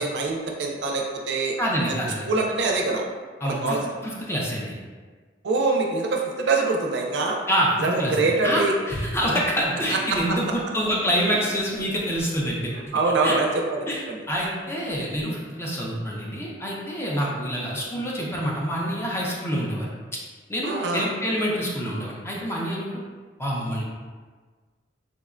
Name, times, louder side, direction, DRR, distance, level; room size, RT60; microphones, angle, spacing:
voice 1, 0.0-1.5 1.9-3.0 3.4-3.8 5.4-7.4 7.8-8.8 9.9-10.4 12.9-13.8 14.1-14.2 17.2-17.3 20.6-21.1, right 3 dB, 70° right, 1 dB, 0.4 m, -24 dB
voice 2, 1.6-2.3 3.4-4.8 7.5-12.7 13.2-13.3 13.9-19.9 20.5-23.0 23.4-23.8, equal, 15° left, -4 dB, 0.5 m, -26 dB
3.6 x 2.1 x 2.4 m, 1.5 s
head